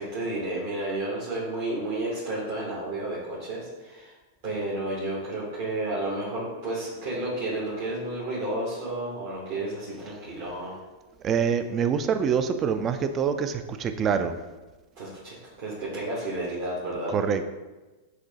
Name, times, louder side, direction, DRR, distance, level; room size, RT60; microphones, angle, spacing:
voice 1, 0.0-4.1 4.4-10.7 15.0-17.1, right 2 dB, 55° right, -8 dB, 1.1 m, -31 dB
voice 2, 11.2-14.4 17.1-17.4, right 7 dB, 30° right, 9 dB, 0.3 m, -25 dB
6.4 x 2.1 x 2.8 m, 1.2 s
hypercardioid pair, 95°, 0 cm